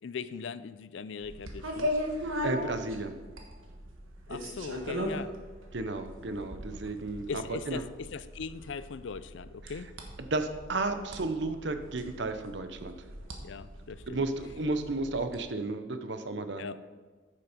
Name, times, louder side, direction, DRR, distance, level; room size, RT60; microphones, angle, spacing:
voice 1, 0.0-1.9 4.3-5.4 7.3-9.9 13.4-14.2 16.6-16.8, left 5 dB, 65° left, 15 dB, 0.4 m, -40 dB
sound 1, 1.2-15.4, equal, 90° right, 1.4 m, -39 dB
voice 2, 2.2-3.2 5.7-7.8 10.2-13.0 14.1-16.6, right 2 dB, 60° right, 9 dB, 0.8 m, -33 dB
9.9 x 7.0 x 5.1 m, 1.4 s
head